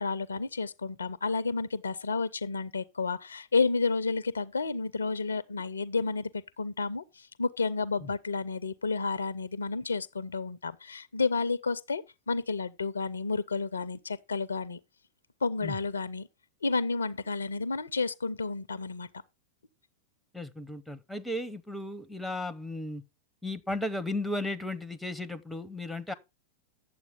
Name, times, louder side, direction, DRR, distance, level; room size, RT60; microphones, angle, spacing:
voice 1, 0.0-14.8 15.4-16.3 16.6-19.1, left 4 dB, 75° left, 0.6 m, -31 dB
voice 2, 20.3-23.0 23.4-26.1, left 1 dB, ahead, 0.8 m, -35 dB
9.4 x 7.4 x 3.6 m
figure-of-eight pair, 90°, 0 cm